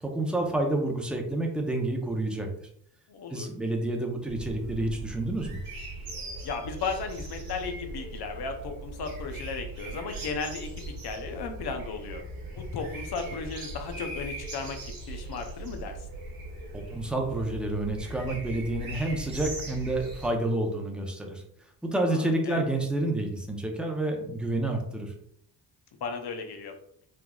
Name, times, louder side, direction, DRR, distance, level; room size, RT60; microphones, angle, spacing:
voice 1, 0.0-2.5 3.3-5.5 16.7-21.4 21.8-25.1, right 1 dB, ahead, 1 dB, 0.6 m, -29 dB
voice 2, 3.1-3.5 6.4-10.7 11.0-12.2 12.6-16.0 22.1-22.6 26.0-26.8, left 4 dB, 65° left, 6 dB, 0.7 m, -35 dB
sound 1, 4.3-20.3, right 2 dB, 55° right, 1.0 m, -39 dB
3.4 x 2.3 x 2.3 m, 0.69 s
cardioid pair, 60°, 42 cm